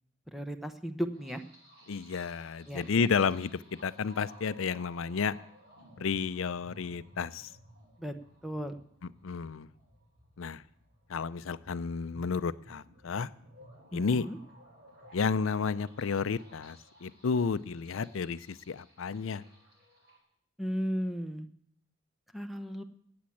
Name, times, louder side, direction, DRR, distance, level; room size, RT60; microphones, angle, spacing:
voice 1, 0.3-1.4 2.7-3.1 8.0-8.1 8.4-8.8 13.9-14.4 20.6-21.5 22.3-22.8, equal, ahead, 7 dB, 0.8 m, -35 dB
sound 1, 1.1-20.2, equal, 50° right, 7.7 m, -57 dB
voice 2, 1.9-5.4 6.0-7.5 9.2-9.7 10.4-10.6 11.1-13.3 13.9-14.3 15.1-19.4, left 5 dB, 80° left, 16 dB, 0.5 m, -31 dB
14.5 x 8.7 x 8.6 m, 0.69 s
head